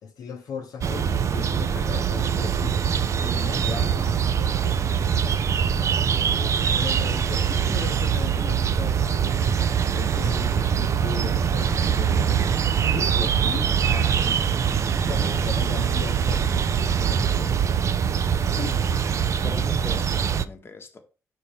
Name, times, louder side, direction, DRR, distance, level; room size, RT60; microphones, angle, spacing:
voice 1, 0.0-2.8 3.2-4.9 6.3-9.4 9.9-14.5 15.0-16.4 16.9-17.6, left 6 dB, 70° left, 1.0 m, -37 dB
sound 1, 0.8-20.4, right 7 dB, 50° right, 0.5 m, -23 dB
voice 2, 3.2-3.5 18.6-19.1 19.4-21.0, left 4 dB, 35° left, 1.2 m, -38 dB
5.1 x 4.2 x 5.6 m
cardioid pair, 75°, 7 cm